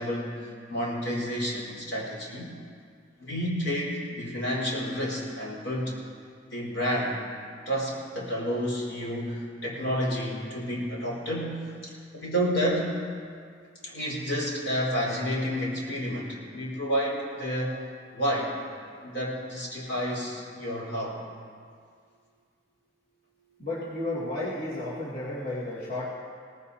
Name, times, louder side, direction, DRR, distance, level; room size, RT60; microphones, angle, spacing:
voice 1, 0.0-2.5 3.2-6.0 6.5-7.2 7.6-12.9 13.8-17.7 18.1-18.5 19.0-21.2, equal, 70° left, -4 dB, 4.6 m, -30 dB
voice 2, 23.6-26.1, left 1 dB, 50° left, -9 dB, 2.7 m, -32 dB
22.0 x 18.0 x 2.8 m, 2.1 s
head